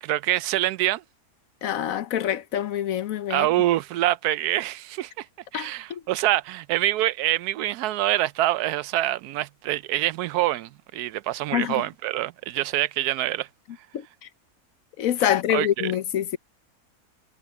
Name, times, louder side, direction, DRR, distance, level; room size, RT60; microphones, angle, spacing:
voice 1, 0.0-1.0 3.3-5.3 5.5-13.5 15.2-15.9, right 14 dB, 90° right, 1.1 m, -25 dB
voice 2, 1.6-3.5 5.5-6.0 11.5-11.8 15.0-16.4, left 10 dB, 65° left, 1.1 m, -25 dB
omnidirectional pair, 1.6 m